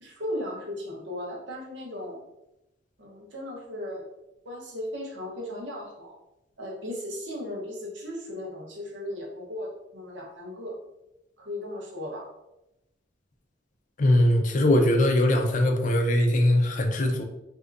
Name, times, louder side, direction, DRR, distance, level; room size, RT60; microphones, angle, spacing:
voice 1, 0.0-2.2 3.0-4.1 4.4-6.2 6.6-10.8 11.4-12.3, left 1 dB, 85° right, -2 dB, 1.0 m, -36 dB
voice 2, 14.0-17.2, left 1 dB, 45° left, 4 dB, 0.4 m, -21 dB
3.5 x 2.7 x 2.5 m, 0.91 s
head